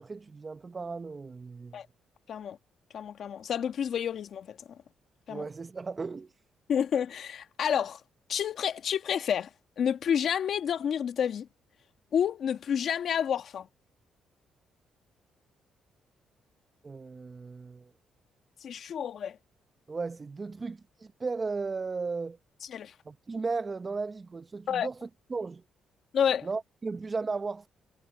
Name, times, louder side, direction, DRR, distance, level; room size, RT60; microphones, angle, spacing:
voice 1, 0.0-1.8 5.3-6.3 16.8-17.9 19.9-22.4 23.1-25.6 26.4-27.7, right 4 dB, 30° right, 0.8 m, -35 dB
voice 2, 2.9-4.8 5.3-5.5 6.7-8.0 8.3-9.5 9.8-11.5 12.1-13.7 18.6-19.4 22.7-22.9 24.7-24.9 26.1-26.5, left 8 dB, 60° left, 1.6 m, -29 dB
cardioid pair, 90°, 0 cm